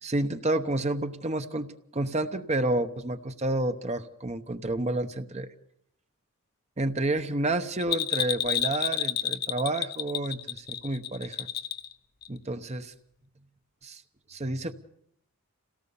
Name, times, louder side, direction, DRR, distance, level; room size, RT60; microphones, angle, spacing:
voice 1, 0.0-5.5 6.8-11.5 12.3-12.9 13.8-14.0 14.3-14.7, right 2 dB, 30° right, 8 dB, 1.0 m, -30 dB
Bell, 7.8-11.9 12.2-12.3, left 10 dB, 45° left, 0.9 m, -30 dB
27.5 x 18.0 x 7.0 m, 0.74 s
head